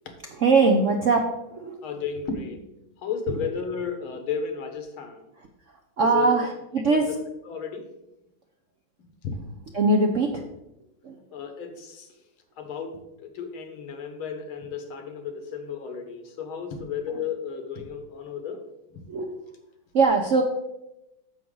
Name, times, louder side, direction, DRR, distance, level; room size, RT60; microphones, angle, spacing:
voice 1, 0.3-1.8 3.3-3.4 5.4-5.5 6.0-7.1 9.7-10.4 11.0-11.2 19.1-19.3 19.9-20.4, right 3 dB, 65° right, 2 dB, 0.8 m, -22 dB
voice 2, 1.8-5.3 6.0-6.3 6.9-7.2 7.5-7.9 9.2-9.6 11.3-12.1 12.6-18.6 18.9-19.0, left 6 dB, 80° left, 6 dB, 2.1 m, -33 dB
9.8 x 7.2 x 3.9 m, 0.90 s
omnidirectional pair, 2.2 m